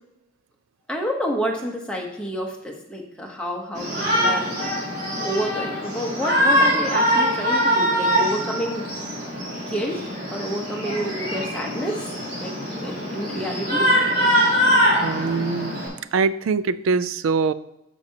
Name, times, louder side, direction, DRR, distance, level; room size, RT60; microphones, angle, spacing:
voice 1, 0.9-4.8 5.2-8.8 9.7-10.0 10.3-12.5 12.8-13.9, equal, 5° left, 0 dB, 0.9 m, -29 dB
Shout, 3.7-15.9, equal, 35° right, 2.5 m, -23 dB
voice 2, 15.0-15.9 16.1-17.5, right 4 dB, 75° right, 16 dB, 0.3 m, -23 dB
11.5 x 4.7 x 2.8 m, 0.89 s
head